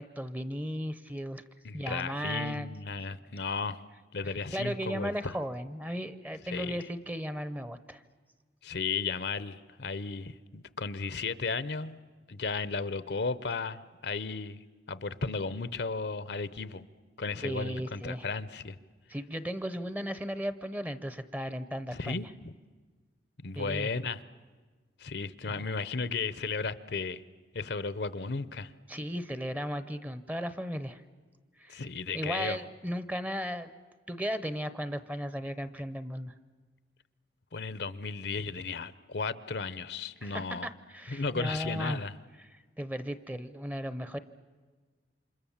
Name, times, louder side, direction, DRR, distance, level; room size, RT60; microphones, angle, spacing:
voice 1, 0.0-1.4 1.7-2.8 4.2-8.0 17.4-18.2 19.1-22.2 23.6-23.9 25.5-25.7 28.9-31.0 31.6-31.8 32.1-33.7 34.1-36.3 40.2-42.0 42.4-44.2, equal, 10° right, 12 dB, 0.7 m, -36 dB
voice 2, 1.6-3.8 4.1-5.3 6.5-6.8 8.6-12.0 12.3-14.6 14.9-16.9 17.2-18.8 21.9-22.5 23.4-24.2 25.0-27.2 27.5-28.7 31.7-32.6 37.5-40.7 41.1-42.1, left 4 dB, 60° left, 16 dB, 0.7 m, -34 dB
28.5 x 26.0 x 7.3 m, 1.4 s
head